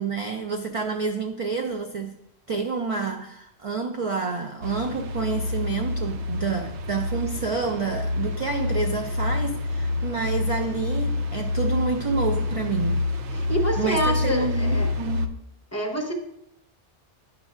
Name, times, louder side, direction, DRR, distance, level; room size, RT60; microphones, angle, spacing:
voice 1, 0.0-2.2 2.5-13.1 13.8-15.3, right 4 dB, 50° right, 4 dB, 0.4 m, -28 dB
sound 1, 4.6-15.3, left 2 dB, 85° right, 0.9 m, -27 dB
voice 2, 13.3-14.9 15.7-16.1, right 1 dB, 15° left, 0 dB, 0.8 m, -27 dB
10.0 x 6.2 x 2.4 m, 0.81 s
omnidirectional pair, 1.2 m